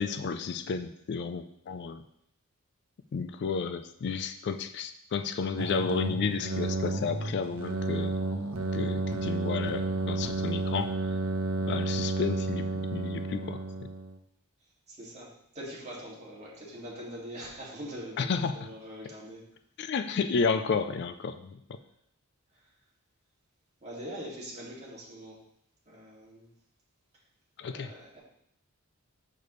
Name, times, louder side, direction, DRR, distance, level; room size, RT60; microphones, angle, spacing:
voice 1, 0.0-2.0 3.1-8.2 8.7-10.9 11.7-13.6 18.2-18.7 19.8-21.6 27.6-27.9, left 5 dB, 50° left, 9 dB, 0.4 m, -32 dB
sound 1, 5.6-14.2, right 2 dB, 75° right, 0.8 m, -31 dB
voice 2, 14.9-19.4 23.8-25.4 25.9-26.5 27.6-28.2, equal, 30° right, -5 dB, 2.3 m, -43 dB
6.6 x 6.6 x 3.1 m, 0.73 s
head